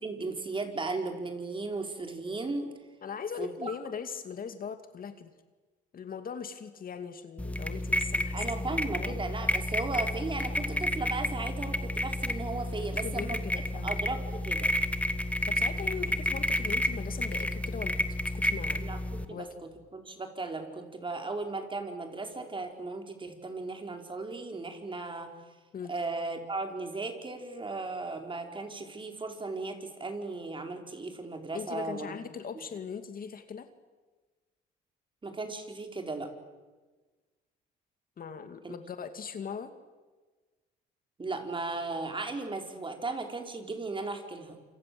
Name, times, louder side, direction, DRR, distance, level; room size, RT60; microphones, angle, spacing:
voice 1, 0.0-2.7 3.4-3.8 8.3-13.4 13.8-14.7 16.1-16.2 18.8-25.3 25.9-32.1 35.2-36.3 38.6-38.7 41.2-44.6, right 3 dB, 25° right, 4 dB, 4.9 m, -36 dB
voice 2, 3.0-5.3 5.9-9.2 13.0-14.0 15.5-18.8 19.3-19.5 25.7-25.9 31.5-33.7 38.2-39.7, left 6 dB, 45° left, 9 dB, 2.4 m, -40 dB
sound 1, 7.4-19.3, left 1 dB, 5° left, 2.0 m, -31 dB
28.0 x 26.5 x 7.9 m, 1.3 s
supercardioid pair, 85°, 20 cm